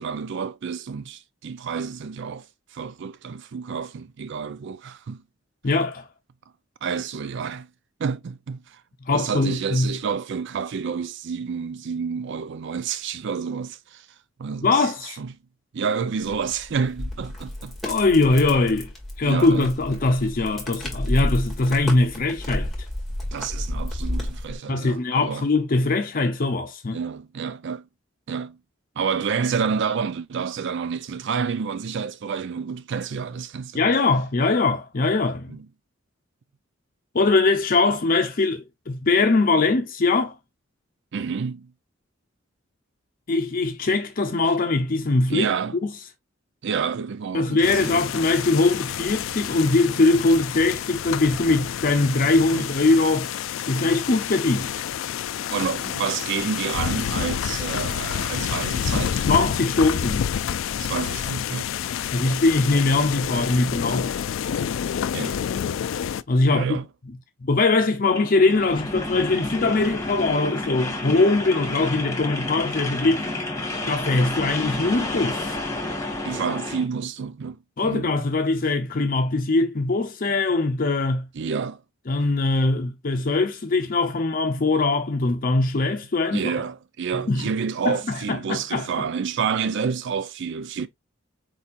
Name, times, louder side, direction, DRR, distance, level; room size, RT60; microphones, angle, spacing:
voice 1, 0.0-2.5 2.7-5.2 6.8-7.7 8.0-8.8 9.1-14.1 14.4-15.3 15.7-17.8 19.2-19.7 23.3-25.5 26.9-27.8 28.3-28.6 29.0-33.8 35.5-35.6 41.1-41.7 45.3-45.8 46.6-48.0 52.5-52.7 55.5-59.3 60.8-61.7 62.2-62.3 65.1-65.4 66.5-66.8 76.2-77.6 77.8-78.2 81.3-81.8 86.3-90.9, right 6 dB, 65° right, 0.4 m, -29 dB
voice 2, 5.6-6.1 9.1-9.9 14.6-15.2 17.8-18.9 19.2-22.7 24.7-27.0 33.7-35.5 37.1-40.3 43.3-45.5 45.8-45.9 47.3-53.3 53.7-54.8 59.3-60.3 62.1-64.1 66.3-66.8 67.4-73.3 73.9-75.6 77.8-81.3 82.1-86.5 87.1-87.5 87.8-88.9, left 3 dB, 45° left, 0.7 m, -21 dB
sound 1, 16.2-24.6, left 1 dB, ahead, 2.0 m, -31 dB
sound 2, 47.6-66.2, left 8 dB, 75° left, 0.3 m, -28 dB
sound 3, 68.0-76.9, left 2 dB, 15° left, 1.7 m, -30 dB
4.7 x 4.2 x 2.4 m
head